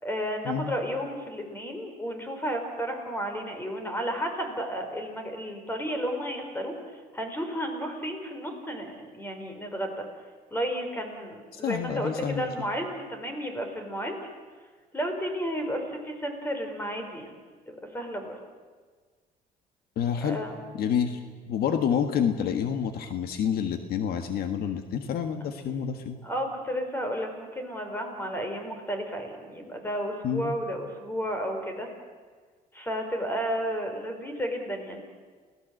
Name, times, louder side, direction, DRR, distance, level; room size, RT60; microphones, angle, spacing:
voice 1, 0.0-10.0 10.5-14.2 14.9-17.3 17.7-18.3 20.2-20.6 26.2-31.9 32.7-35.0, equal, 10° left, 5 dB, 5.0 m, -32 dB
voice 2, 11.5-12.5 20.0-20.4 20.7-21.2 21.5-26.2 30.2-30.6, left 8 dB, 65° left, 7 dB, 1.6 m, -28 dB
28.5 x 18.0 x 7.9 m, 1.5 s
cardioid pair, 110°, 17 cm